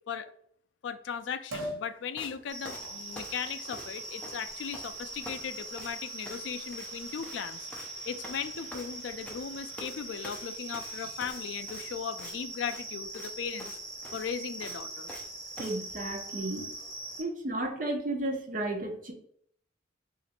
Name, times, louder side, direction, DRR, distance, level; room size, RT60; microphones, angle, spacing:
voice 1, 0.8-7.7 8.1-13.8 14.1-15.1, left 7 dB, 65° left, 11 dB, 0.3 m, -37 dB
Liquid, 1.5-1.8 2.4-12.1 12.4-12.5, right 1 dB, 90° right, 1.0 m, -48 dB
sound 1, 2.2-2.3 2.6-4.0 4.2-4.9 5.2-5.5 5.8-5.9 6.3-6.5 6.7-6.9 7.2-7.4 7.7-7.9 8.2-9.4 9.8-10.0 10.2-12.4 12.7-12.8 13.1-13.3 13.6-13.8 14.0-15.3 15.6-15.8, left 1 dB, 5° left, 0.6 m, -46 dB
sound 2, 2.5-17.2, right 2 dB, 65° right, 1.3 m, -42 dB
voice 2, 15.6-16.7 17.2-19.1, right 1 dB, 40° right, 3 dB, 0.6 m, -33 dB
3.0 x 2.5 x 4.2 m, 0.66 s
head